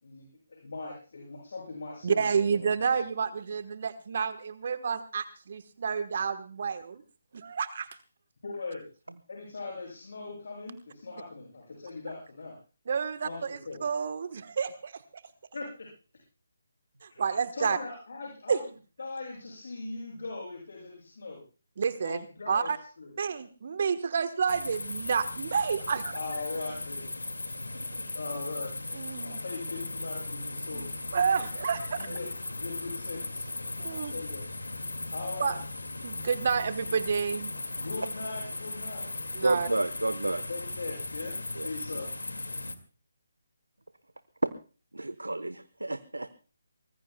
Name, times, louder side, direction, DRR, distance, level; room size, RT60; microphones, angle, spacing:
voice 1, 0.0-3.0 8.4-8.8 9.3-12.5 13.2-13.8 15.5-15.9 17.1-18.6 19.0-21.4 22.0-22.7 23.0-23.1 26.1-27.1 27.6-31.2 32.0-32.3 32.6-33.4 33.7-34.5 35.1-35.5 37.8-39.3 40.5-41.3 41.6-42.1, left 3 dB, 55° left, -2 dB, 7.0 m, -40 dB
voice 2, 2.0-7.0 7.3-7.9 12.9-15.2 17.0-17.8 18.5-18.6 21.8-22.2 22.5-22.8 23.2-26.2 28.9-29.4 30.7-30.9 31.1-32.2 33.8-34.1 35.4-35.6 36.0-37.5 39.3-39.7, right 6 dB, 45° right, 10 dB, 1.2 m, -30 dB
sound 1, 24.5-42.7, left 2 dB, 75° left, 2.2 m, -37 dB
voice 3, 39.4-40.4 41.5-41.7 44.4-44.5 44.9-46.4, right 2 dB, 80° right, 14 dB, 1.1 m, -30 dB
24.0 x 21.0 x 2.3 m, 0.37 s
figure-of-eight pair, 145°, 0 cm